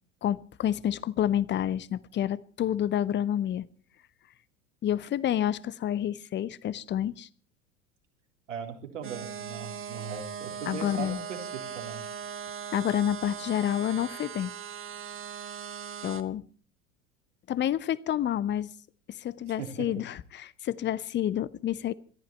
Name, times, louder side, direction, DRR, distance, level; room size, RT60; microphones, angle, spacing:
voice 1, 0.2-3.6 4.8-7.3 10.7-11.2 12.7-14.5 16.0-16.4 17.5-18.7 19.1-21.9, left 11 dB, 30° left, 1.0 m, -29 dB
voice 2, 8.5-12.0 19.6-19.7, right 7 dB, 80° right, 3.7 m, -39 dB
sound 1, 9.0-16.2, right 7 dB, 35° right, 1.9 m, -39 dB
21.5 x 14.0 x 4.4 m
figure-of-eight pair, 80°, 37 cm